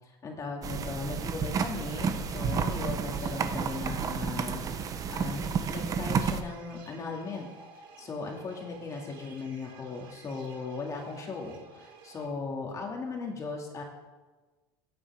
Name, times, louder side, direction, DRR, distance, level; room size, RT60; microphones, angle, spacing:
voice 1, 0.2-7.5 8.0-13.8, left 4 dB, 30° left, 0 dB, 2.2 m, -37 dB
sound 1, 0.6-6.4, right 6 dB, 30° right, 0.8 m, -31 dB
sound 2, 1.6-12.3, right 5 dB, 80° right, 2.1 m, -53 dB
16.0 x 8.8 x 3.6 m, 1.3 s
supercardioid pair, 120°, 12 cm